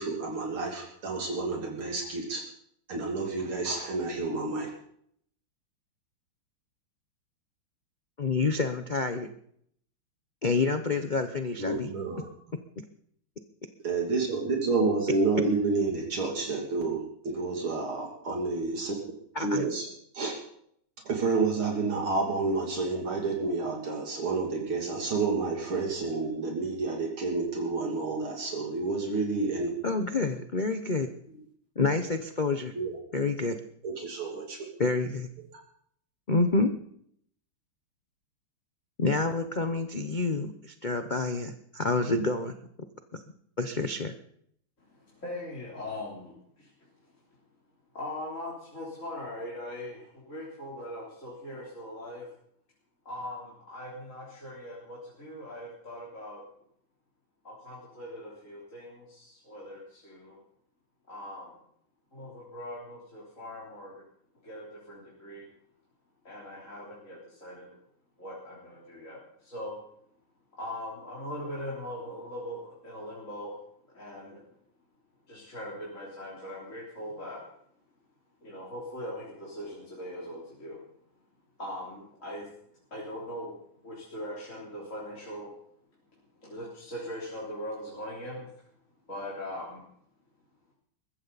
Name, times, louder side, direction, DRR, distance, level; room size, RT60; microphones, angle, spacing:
voice 1, 0.0-2.4 2.9-4.7 11.6-12.3 13.8-18.9 19.4-19.9 20.1-20.4 21.1-29.7 32.7-33.0 33.8-34.6, right 3 dB, 70° right, 0 dB, 3.5 m, -29 dB
voice 2, 8.2-9.3 10.4-11.9 19.3-19.6 29.8-31.1 31.8-32.7 33.1-33.6 34.8-35.3 36.3-36.7 39.0-42.6 43.1-43.2 43.6-44.1, left 3 dB, 70° left, 7 dB, 0.4 m, -28 dB
voice 3, 44.9-46.7 47.9-52.3 53.1-56.4 57.4-60.4 61.1-61.6 62.1-64.0 64.4-65.5 66.2-67.8 68.2-69.7 70.6-73.6 73.9-74.4 75.3-77.4 78.4-80.8 81.6-82.5 82.9-83.6 83.8-85.5 86.4-88.5 89.1-89.8, left 1 dB, 35° left, -6 dB, 3.9 m, -40 dB
21.0 x 15.0 x 4.1 m, 0.69 s
omnidirectional pair, 2.4 m